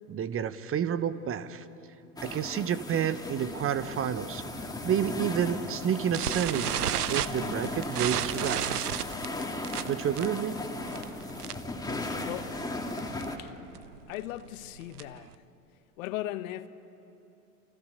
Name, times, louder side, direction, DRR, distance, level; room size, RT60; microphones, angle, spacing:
voice 1, 0.1-1.6 2.2-4.4 4.8-6.7 7.1-8.9 9.8-10.6, right 9 dB, 30° right, 1.2 m, -30 dB
sound 1, 2.2-13.4, left 2 dB, 10° left, 2.9 m, -37 dB
sound 2, 6.1-11.8 12.0-12.3 12.6-12.7 13.0-13.2 13.7-15.3, right 10 dB, 75° right, 1.0 m, -32 dB
voice 2, 12.2-12.6 13.4-13.6 14.1-15.5 16.0-16.7, left 14 dB, 60° left, 1.2 m, -38 dB
28.5 x 28.0 x 6.9 m
figure-of-eight pair, 80°, 46 cm